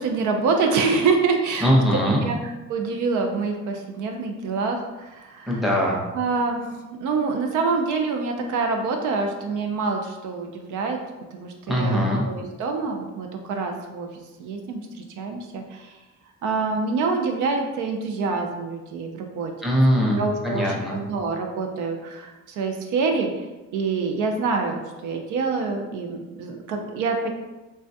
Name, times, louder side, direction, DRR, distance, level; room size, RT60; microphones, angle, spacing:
voice 1, 0.0-2.4 2.7-5.5 6.1-11.0 11.3-12.0 12.3-14.1 14.4-16.0 16.4-19.5 20.1-23.5 23.7-27.3, right 4 dB, 80° right, 3 dB, 0.5 m, -26 dB
voice 2, 1.6-2.2 5.5-6.0 11.7-12.2 19.6-21.0, equal, ahead, -3 dB, 0.7 m, -21 dB
3.3 x 2.2 x 2.7 m, 1.1 s
cardioid pair, 90°, 30 cm